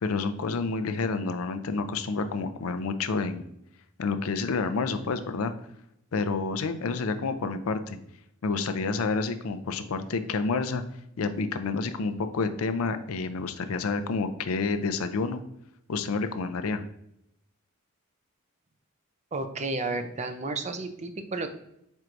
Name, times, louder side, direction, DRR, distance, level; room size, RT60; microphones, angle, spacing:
voice 1, 0.0-3.4 4.0-5.5 6.1-8.0 8.4-10.8 11.2-15.4 15.9-16.8, left 4 dB, 75° left, 10 dB, 0.5 m, -29 dB
voice 2, 19.3-21.5, right 3 dB, 35° right, 8 dB, 0.5 m, -32 dB
4.6 x 4.4 x 2.5 m, 0.78 s
head